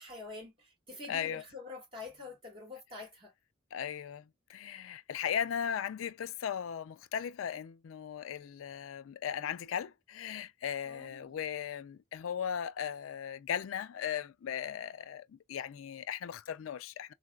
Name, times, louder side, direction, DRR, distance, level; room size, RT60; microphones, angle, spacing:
voice 1, 0.0-3.3 10.8-11.3, left 3 dB, 30° right, 2.4 m, -46 dB
voice 2, 1.1-1.4 3.7-4.2 4.5-17.1, left 8 dB, 85° left, 0.4 m, -37 dB
3.8 x 2.2 x 2.3 m
head